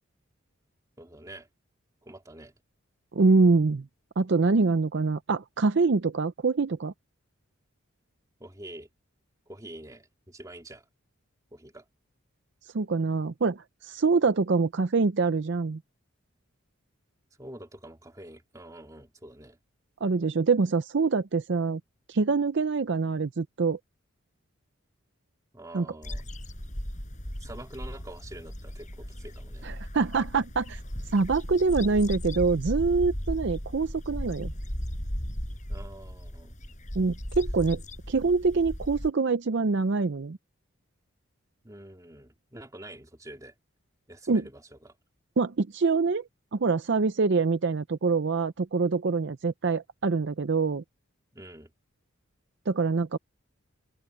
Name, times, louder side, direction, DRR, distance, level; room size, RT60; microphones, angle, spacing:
voice 1, 1.0-1.5 2.0-2.5 8.4-8.9 9.5-10.8 11.5-11.8 17.4-19.6 25.5-26.2 27.4-29.7 35.7-36.6 41.6-43.5 44.1-44.9 51.3-51.7, right 1 dB, 15° right, 3.2 m, -46 dB
voice 2, 3.1-3.8 4.2-6.9 12.7-15.8 20.0-21.8 22.1-23.8 25.7-25.9 29.6-30.8 31.1-34.5 37.0-37.8 38.1-40.4 44.3-44.4 45.4-46.2 46.5-50.8 52.7-53.2, right 4 dB, 55° right, 0.5 m, -25 dB
sound 1, 26.0-39.1, equal, 35° left, 6.8 m, -36 dB
open air
head